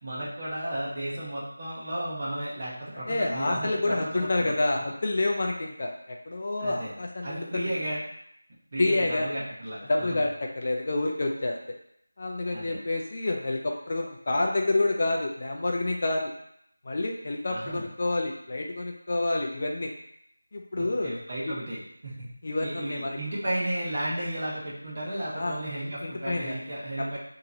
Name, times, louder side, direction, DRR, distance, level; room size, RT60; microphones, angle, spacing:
voice 1, 0.0-4.5 6.6-6.9 7.2-8.0 8.7-10.2 12.5-12.8 17.5-17.8 20.7-22.3 22.6-27.2, right 1 dB, 20° right, -7 dB, 0.9 m, -33 dB
voice 2, 3.1-7.7 8.8-9.3 9.9-10.3 10.6-11.6 12.2-16.3 16.8-19.9 20.5-21.1 21.5-21.6 22.4-23.2 25.3-26.6 27.0-27.2, left 2 dB, 25° left, 1 dB, 0.4 m, -28 dB
5.2 x 2.9 x 2.7 m, 0.72 s
figure-of-eight pair, 180°, 0 cm